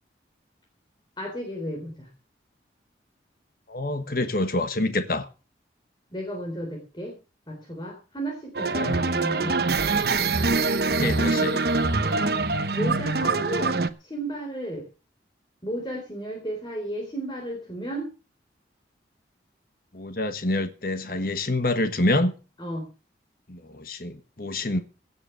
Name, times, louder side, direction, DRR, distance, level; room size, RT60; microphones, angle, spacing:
voice 1, 1.2-2.1 6.1-7.2 7.5-9.7 12.0-12.2 12.7-14.9 15.6-18.1 22.6-22.9, right 1 dB, 25° left, 3.5 m, -33 dB
voice 2, 3.7-5.3 8.8-9.0 9.3-9.6 10.8-11.6 19.9-22.3 23.5-24.8, left 2 dB, 50° left, 1.4 m, -27 dB
sound 1, 8.5-13.9, right 3 dB, 55° right, 1.0 m, -24 dB
17.0 x 7.2 x 6.8 m
head